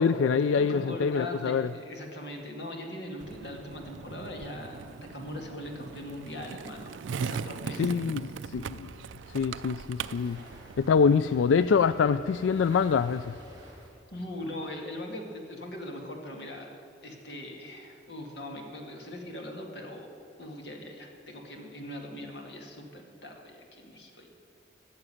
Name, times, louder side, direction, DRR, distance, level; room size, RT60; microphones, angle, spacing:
voice 1, 0.0-1.7 7.8-8.9 9.3-10.4 10.8-13.4, left 6 dB, 85° left, 14 dB, 0.3 m, -25 dB
voice 2, 0.5-8.0 14.1-24.3, left 1 dB, 60° left, 1 dB, 2.2 m, -41 dB
Skateboard, 3.2-11.2, right 6 dB, 85° right, 0.4 m, -39 dB
sound 1, 8.4-13.9, right 1 dB, 25° right, 3.2 m, -51 dB
14.5 x 6.8 x 9.9 m, 2.8 s
head